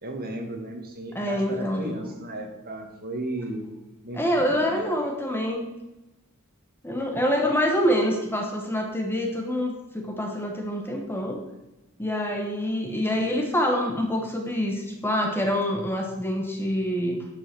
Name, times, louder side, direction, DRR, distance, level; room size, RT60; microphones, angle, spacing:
voice 1, 0.0-3.7 4.0-4.8, right 1 dB, 45° right, 2 dB, 1.8 m, -35 dB
voice 2, 1.1-1.9 4.1-5.7 6.8-11.4 12.0-17.3, equal, 10° left, 2 dB, 1.1 m, -26 dB
11.0 x 5.5 x 6.0 m, 1.0 s
head